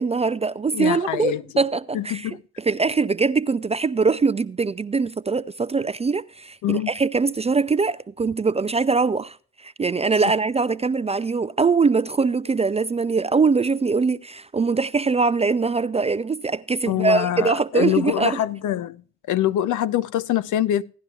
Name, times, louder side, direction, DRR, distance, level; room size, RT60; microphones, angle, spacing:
voice 1, 0.0-9.4 9.6-18.4, right 4 dB, 20° right, 0.4 m, -22 dB
voice 2, 0.7-1.4 1.9-2.4 6.6-6.9 16.9-19.0 19.3-20.8, left 12 dB, 60° left, 0.6 m, -24 dB
16.5 x 11.0 x 2.3 m
hypercardioid pair, 55°, 35 cm